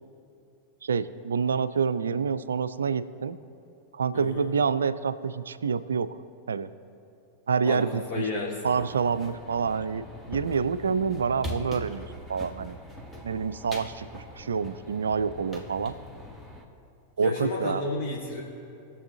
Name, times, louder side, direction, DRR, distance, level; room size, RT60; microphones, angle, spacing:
voice 1, 0.8-3.4 3.9-6.2 6.5-6.7 7.5-8.3 8.6-12.8 13.2-16.0 17.2-17.8, right 6 dB, 70° right, 14 dB, 0.4 m, -27 dB
voice 2, 4.1-4.5 7.6-8.5 17.2-18.4, left 3 dB, 40° left, -4 dB, 1.6 m, -32 dB
sound 1, 8.6-16.6, left 1 dB, 5° left, 1.2 m, -42 dB
21.0 x 7.0 x 2.9 m, 2.6 s
figure-of-eight pair, 90°, 0 cm